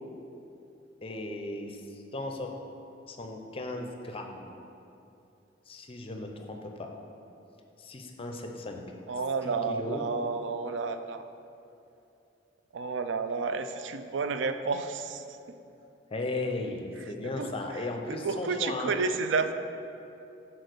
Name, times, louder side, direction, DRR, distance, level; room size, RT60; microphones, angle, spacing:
voice 1, 1.0-2.5 3.1-4.5 5.7-6.9 7.8-8.8 9.4-10.0 16.1-18.9, left 2 dB, 30° left, 3 dB, 0.6 m, -36 dB
voice 2, 9.1-11.3 12.7-15.4 17.2-19.5, right 4 dB, 80° right, 9 dB, 0.4 m, -31 dB
6.3 x 4.3 x 6.6 m, 2.7 s
head